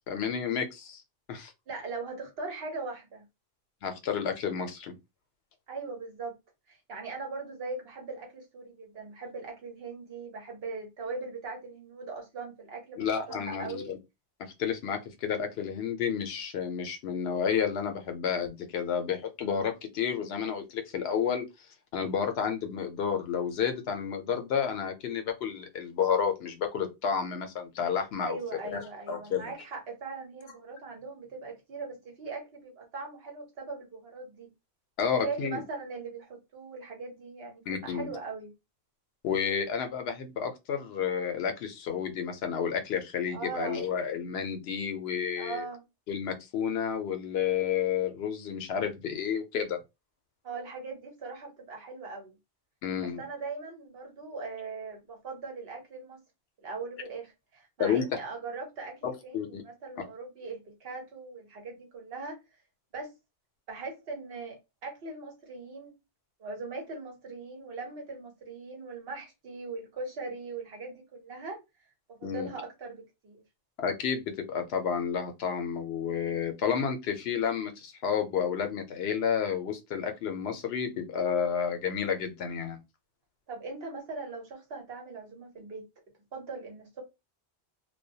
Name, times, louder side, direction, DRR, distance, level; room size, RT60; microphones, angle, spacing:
voice 1, 0.1-1.0 1.3-1.5 3.8-4.9 13.0-14.0 14.4-21.4 21.9-28.4 28.7-29.4 35.0-35.6 37.7-38.1 39.2-45.6 46.1-49.8 52.8-53.2 57.8-58.0 59.0-59.6 72.2-72.5 73.8-82.8, left 7 dB, 80° left, 0.8 m, -31 dB
voice 2, 1.7-3.2 5.7-6.3 6.7-14.0 28.2-34.5 35.0-38.5 43.3-43.9 45.4-45.8 50.4-52.3 53.2-56.2 56.6-62.4 62.9-63.1 63.7-66.0 66.4-71.6 72.1-73.4 83.5-85.8 86.3-87.0, right 3 dB, 75° right, 1.1 m, -40 dB
2.2 x 2.2 x 2.6 m
omnidirectional pair, 1.0 m